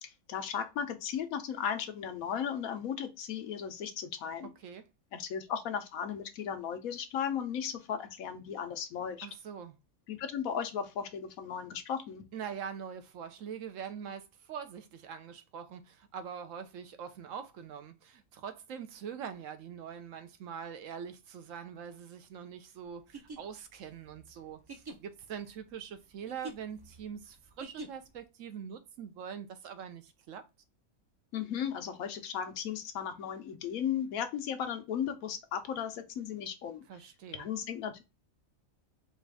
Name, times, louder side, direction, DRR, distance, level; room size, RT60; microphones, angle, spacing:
voice 1, 0.0-4.5 5.1-9.3 10.1-12.2 31.3-36.8 37.3-38.0, left 8 dB, 90° left, 1.2 m, -36 dB
voice 2, 9.2-9.7 12.3-30.4 36.9-37.5, right 7 dB, 70° right, 1.0 m, -43 dB
sound 1, 23.0-28.2, right 3 dB, 25° right, 0.5 m, -47 dB
4.3 x 2.4 x 3.3 m
omnidirectional pair, 1.4 m